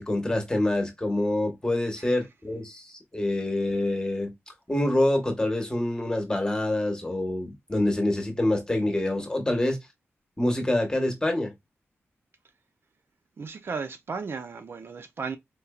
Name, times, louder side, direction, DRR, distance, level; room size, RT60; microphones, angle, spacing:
voice 1, 0.0-4.3 4.7-9.8 10.4-11.5, left 1 dB, 15° left, 1.2 m, -26 dB
voice 2, 13.4-15.4, right 5 dB, 55° right, 0.4 m, -35 dB
4.4 x 2.6 x 2.2 m
wide cardioid pair, 100°, 5 cm